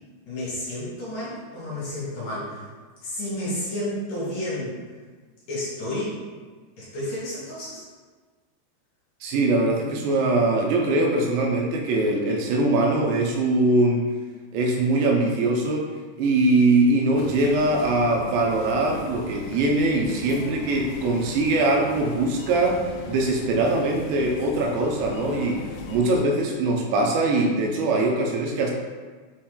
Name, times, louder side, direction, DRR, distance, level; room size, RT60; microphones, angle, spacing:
voice 1, 0.3-2.7 3.0-4.8 5.5-6.2 6.8-7.8, left 1 dB, 60° left, -9 dB, 3.5 m, -31 dB
voice 2, 9.2-14.1 14.5-15.9 16.2-22.8 23.1-25.6 25.9-28.7, right 2 dB, 85° right, 1 dB, 3.2 m, -22 dB
sound 1, 17.2-26.2, left 5 dB, 90° left, 2.9 m, -39 dB
7.3 x 4.4 x 3.8 m, 1.4 s
omnidirectional pair, 5.0 m